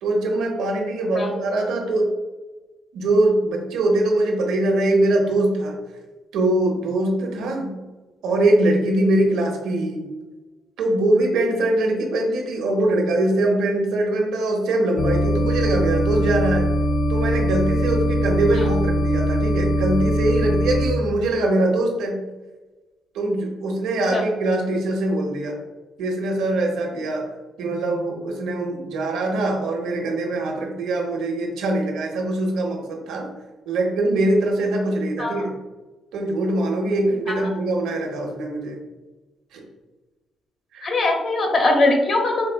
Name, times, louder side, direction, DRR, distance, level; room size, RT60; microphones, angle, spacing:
voice 1, 0.0-2.1 2.9-5.8 6.3-7.7 8.2-10.1 10.8-16.7 17.1-22.2 23.1-25.6 26.0-27.2 27.6-33.3 33.7-35.5 36.1-38.8 39.5-39.6 40.7-40.9, right 1 dB, 85° right, 1 dB, 0.8 m, -22 dB
sound 1, 15.0-20.9, equal, 80° left, 0.4 m, -21 dB
voice 2, 40.8-42.5, left 2 dB, 45° left, 3 dB, 0.8 m, -21 dB
4.6 x 3.4 x 2.2 m, 1.2 s
cardioid pair, 90°, 0 cm